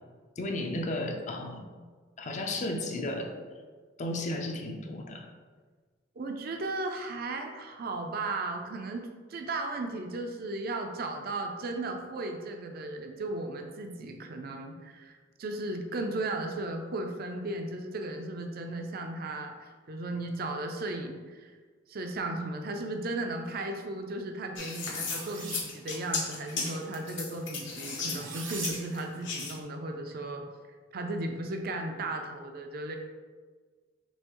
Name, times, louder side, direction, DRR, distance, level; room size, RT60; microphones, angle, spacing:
voice 1, 0.4-1.6 2.2-3.3 4.0-5.3, left 1 dB, 40° left, 3 dB, 0.5 m, -33 dB
voice 2, 6.2-15.1 15.4-21.5 21.9-30.4 30.9-33.0, right 2 dB, 55° right, 4 dB, 0.5 m, -35 dB
sound 1, 24.6-29.6, left 4 dB, 75° left, 1.0 m, -35 dB
sound 2, 24.9-25.6 28.1-28.7, right 5 dB, 80° right, 0.9 m, -39 dB
5.4 x 3.3 x 3.0 m, 1.5 s
head